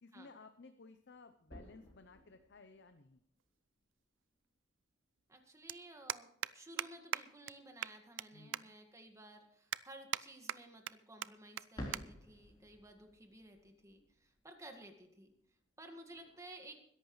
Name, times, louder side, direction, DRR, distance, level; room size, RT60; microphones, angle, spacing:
voice 1, 0.0-3.2 8.3-8.7, left 3 dB, 65° left, 9 dB, 0.7 m, -57 dB
sound 1, 1.0-3.8 11.5-16.4, equal, 25° left, 3.9 m, -53 dB
sound 2, 3.4-3.5 4.9-5.0 5.2-5.4 5.7-5.8 6.1-6.5 6.8-6.9 7.1-7.2 7.5-7.6 7.8-8.3 8.5-8.6 9.1-9.2 9.7-10.2 10.5-10.9 11.2-11.3 11.6-11.7 11.9-12.0 12.3-12.6 13.4-13.6, right 11 dB, 85° right, 0.4 m, -39 dB
voice 2, 5.3-15.3 15.8-16.8, right 1 dB, 15° right, 4 dB, 1.8 m, -55 dB
21.0 x 11.0 x 3.2 m, 0.71 s
head